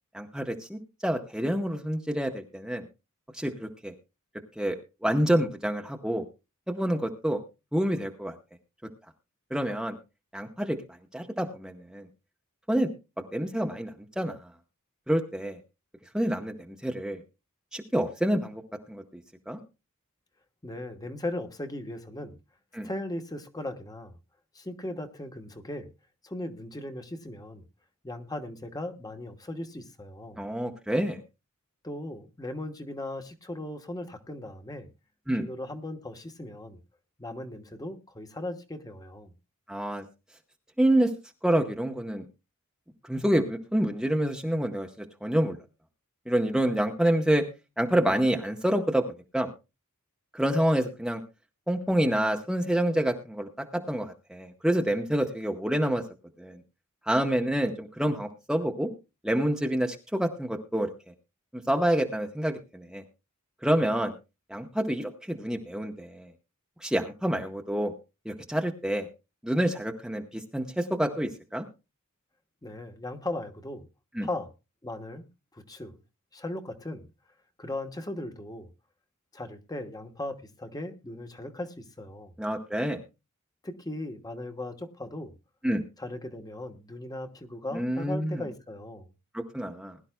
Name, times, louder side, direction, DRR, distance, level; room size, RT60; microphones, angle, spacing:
voice 1, 0.1-2.8 3.3-3.9 4.6-4.8 5.0-6.2 6.7-7.4 7.7-8.3 9.5-10.0 10.3-10.8 11.1-12.1 12.7-12.9 13.3-13.9 14.2-14.4 15.1-15.6 16.1-17.2 17.7-18.6 18.9-19.0 19.5-19.6 22.7-22.9 30.4-31.2 35.3-35.4 39.7-40.0 40.8-41.1 41.4-42.3 43.1-44.9 45.2-45.6 46.3-47.4 47.8-49.1 49.3-49.5 50.3-51.2 51.7-56.0 56.4-56.6 57.1-58.9 59.2-60.9 61.7-63.0 63.6-64.1 64.5-66.3 66.8-67.9 68.3-69.1 69.4-71.7 74.2-74.3 82.4-83.0 85.6-85.8 87.7-88.4 89.3-90.0, right 1 dB, 5° right, 0.9 m, -27 dB
voice 2, 20.6-22.3 22.8-24.2 24.5-25.9 26.2-27.6 28.0-30.4 31.8-34.9 35.4-36.8 37.2-39.3 72.6-73.9 74.2-74.5 74.8-75.2 75.5-76.0 76.3-77.1 77.6-78.7 79.3-82.3 83.6-85.3 86.0-89.1, left 1 dB, 20° left, 1.1 m, -38 dB
21.0 x 11.5 x 2.2 m
head